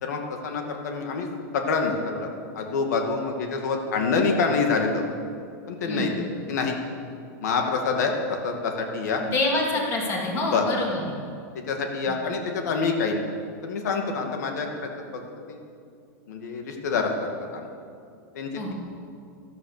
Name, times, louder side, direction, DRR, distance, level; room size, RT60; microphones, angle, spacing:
voice 1, 0.0-1.3 1.5-2.3 2.5-5.0 5.7-6.1 6.5-6.8 7.4-9.2 10.5-10.6 11.7-13.2 13.6-14.7 15.5-15.6 16.3-17.3 17.5-17.7 18.4-18.7, left 4 dB, 80° left, 3 dB, 2.2 m, -26 dB
voice 2, 5.9-6.2 9.2-11.1 12.0-12.1 18.6-18.7, left 2 dB, 30° left, -1 dB, 3.1 m, -27 dB
13.5 x 13.0 x 6.7 m, 2.4 s
supercardioid pair, 165°, 9 cm